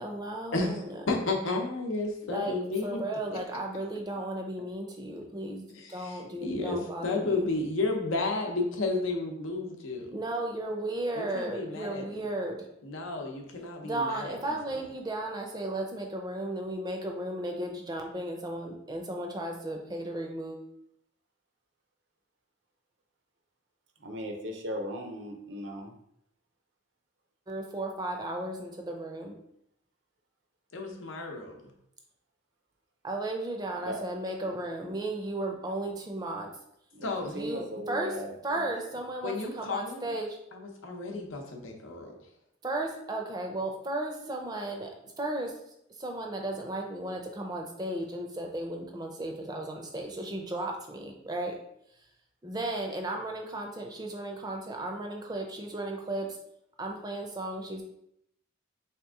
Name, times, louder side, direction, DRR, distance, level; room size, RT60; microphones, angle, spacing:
voice 1, 0.0-1.0 2.2-2.5 2.8-7.5 10.1-12.7 13.8-20.6 27.5-29.3 33.0-36.5 37.3-38.2 38.4-40.4 42.6-44.9 45.2-45.6 46.0-51.6 52.4-56.4 56.8-57.8, right 1 dB, 20° right, 2 dB, 0.5 m, -35 dB
voice 2, 1.1-3.0 5.7-10.1 11.1-12.2 12.8-14.4 30.7-31.6 37.0-37.3 39.2-40.1 40.5-42.1, left 3 dB, 90° left, 2 dB, 0.7 m, -32 dB
voice 3, 24.0-25.9 33.8-34.0 34.4-34.5 36.9-37.1 37.3-38.7, equal, 65° right, 3 dB, 0.6 m, -37 dB
3.5 x 2.9 x 3.5 m, 0.76 s
head